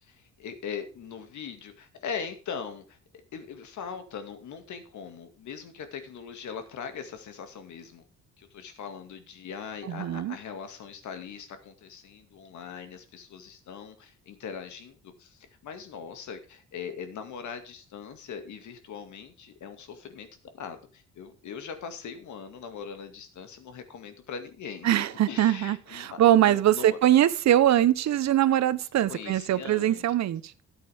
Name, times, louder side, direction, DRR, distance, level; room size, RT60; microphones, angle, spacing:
voice 1, 0.0-3.0 3.3-8.0 8.4-20.3 20.5-27.0 29.1-30.1, left 6 dB, 70° left, 2.2 m, -40 dB
voice 2, 9.9-10.3 24.8-30.4, right 12 dB, 60° right, 0.9 m, -22 dB
13.0 x 8.4 x 3.5 m
cardioid pair, 90°, 30 cm